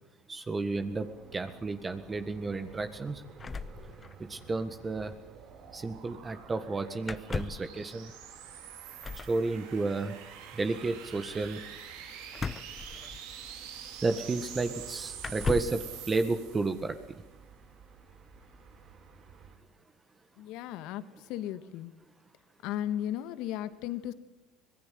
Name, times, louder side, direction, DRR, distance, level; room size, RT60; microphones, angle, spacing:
voice 1, 0.3-3.2 4.3-5.1 5.7-8.1 9.3-10.1 10.5-11.6 14.0-17.0, right 3 dB, 20° right, 8 dB, 1.7 m, -32 dB
sound 1, 0.6-19.6, right 5 dB, 45° right, 7.8 m, -54 dB
sound 2, 3.4-4.5 4.7-4.8 5.0-5.2 7.0-7.7 9.0-9.4 12.3-13.5 14.4-14.5 15.2-15.9, left 5 dB, 25° left, 1.0 m, -36 dB
sound 3, 4.5-17.0, right 9 dB, 80° right, 3.9 m, -47 dB
voice 2, 20.4-21.9 22.6-24.1, left 11 dB, 70° left, 13 dB, 1.6 m, -35 dB
25.5 x 18.5 x 7.7 m, 0.88 s
supercardioid pair, 95°, 0 cm